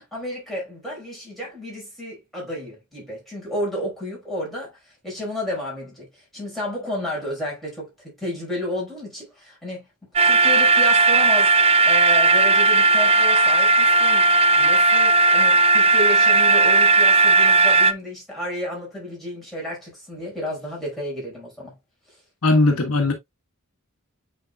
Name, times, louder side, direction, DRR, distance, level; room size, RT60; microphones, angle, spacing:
voice 1, 0.0-21.7, left 1 dB, ahead, 5.2 m, -32 dB
sound 1, 10.2-17.9, right 2 dB, 25° right, 0.4 m, -16 dB
voice 2, 22.4-23.1, left 2 dB, 70° left, 1.3 m, -18 dB
8.7 x 4.6 x 2.3 m
head